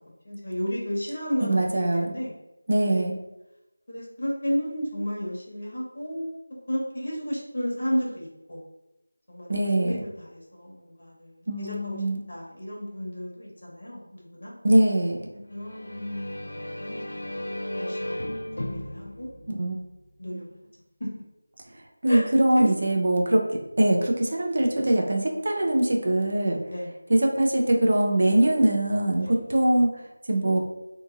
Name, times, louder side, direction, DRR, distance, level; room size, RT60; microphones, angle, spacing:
voice 1, 0.2-2.3 2.9-3.0 3.9-6.3 6.7-8.6 9.3-12.0 12.3-14.6 15.5-17.5 17.8-18.3 18.6-19.3 20.2-20.4 21.0-21.2 22.1-22.2 22.5-22.7 26.7-26.9 29.2-29.4, equal, 55° left, -4 dB, 1.1 m, -33 dB
voice 2, 1.4-2.1 2.7-3.2 9.5-10.0 11.5-12.2 14.6-15.3 19.5-19.8 20.3-20.4 22.0-26.6 27.1-30.0 30.3-30.6, right 1 dB, 45° right, 0 dB, 0.5 m, -22 dB
sound 1, 15.5-20.3, left 1 dB, 80° left, 0.3 m, -35 dB
2.7 x 2.6 x 2.5 m, 0.94 s
figure-of-eight pair, 175°, 0 cm